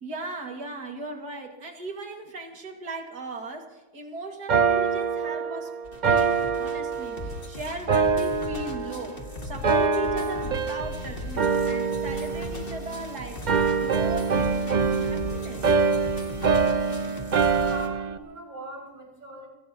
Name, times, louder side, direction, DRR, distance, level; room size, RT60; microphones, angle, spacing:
voice 1, 0.0-5.7 6.0-13.6 13.8-15.8, right 3 dB, 70° right, 3 dB, 2.6 m, -38 dB
sound 1, 4.5-7.4 7.9-9.2 9.6-11.0 11.4-13.1 13.5-18.2, right 5 dB, 90° right, 0.4 m, -25 dB
sound 2, 5.8-17.9, left 1 dB, 35° left, 2.2 m, -38 dB
voice 2, 17.5-19.5, right 1 dB, 30° right, -2 dB, 5.7 m, -41 dB
24.5 x 18.0 x 2.9 m, 1.1 s
omnidirectional pair, 1.7 m